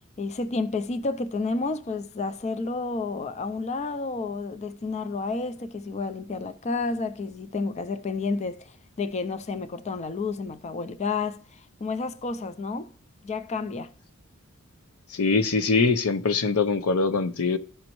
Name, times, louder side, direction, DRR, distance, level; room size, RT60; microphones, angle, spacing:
voice 1, 0.2-12.9 13.2-13.9, left 3 dB, 30° left, 0.4 m, -30 dB
voice 2, 15.1-17.6, left 4 dB, 90° left, 0.7 m, -23 dB
14.5 x 5.2 x 3.0 m
head